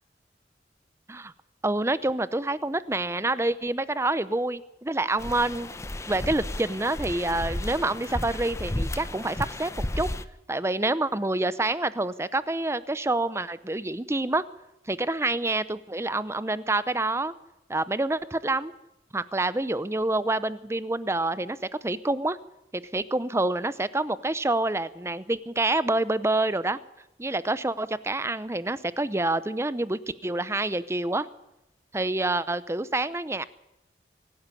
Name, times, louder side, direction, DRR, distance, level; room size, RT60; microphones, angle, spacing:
voice 1, 1.6-5.7 6.1-10.1 10.5-14.4 14.9-17.3 17.7-18.7 19.1-21.6 21.8-22.4 22.7-26.8 27.2-31.3 31.9-33.4, right 2 dB, 15° right, 16 dB, 0.7 m, -27 dB
sound 1, 5.2-10.2, left 1 dB, 15° left, 0.7 m, -33 dB
24.5 x 12.5 x 9.8 m, 0.89 s
head